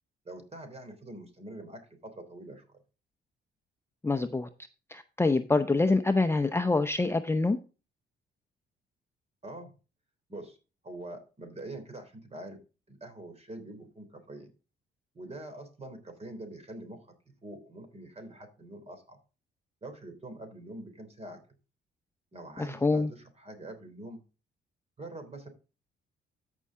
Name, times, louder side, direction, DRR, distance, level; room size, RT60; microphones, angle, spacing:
voice 1, 0.3-2.8 9.4-9.7 10.3-10.6 10.8-12.6 12.9-14.5 15.1-17.1 17.4-19.2 19.8-21.4 22.3-24.2 25.0-25.5, right 1 dB, 30° right, 3.5 m, -44 dB
voice 2, 4.0-4.5 4.9-7.6 22.6-23.1, left 3 dB, 10° left, 0.7 m, -26 dB
14.0 x 5.6 x 3.7 m
cardioid pair, 90°, 20 cm